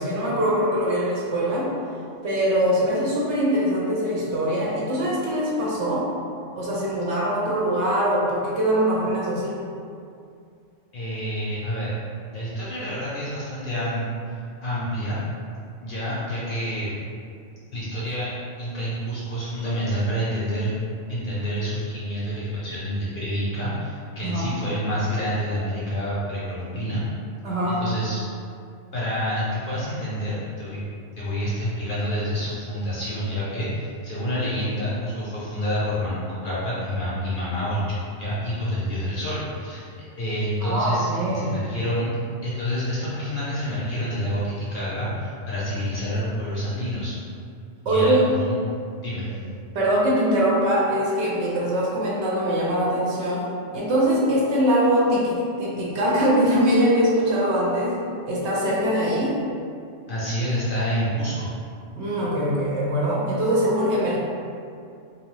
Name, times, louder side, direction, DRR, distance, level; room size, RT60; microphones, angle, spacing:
voice 1, 0.0-1.7 2.2-6.1 6.6-9.6 24.2-24.5 27.4-27.8 40.6-41.6 47.9-48.4 49.7-53.5 53.7-58.0 58.3-59.4 62.0-64.2, equal, 70° right, -5 dB, 0.8 m, -22 dB
voice 2, 10.9-12.0 12.3-14.0 14.3-15.2 15.8-16.9 17.7-18.3 18.6-20.7 21.1-27.0 27.7-28.2 28.9-30.8 31.2-39.8 40.2-42.1 42.4-47.1 47.8-48.6 49.0-49.4 60.1-61.5, equal, 55° left, -9 dB, 0.6 m, -28 dB
2.6 x 2.3 x 3.0 m, 2.4 s
omnidirectional pair, 1.3 m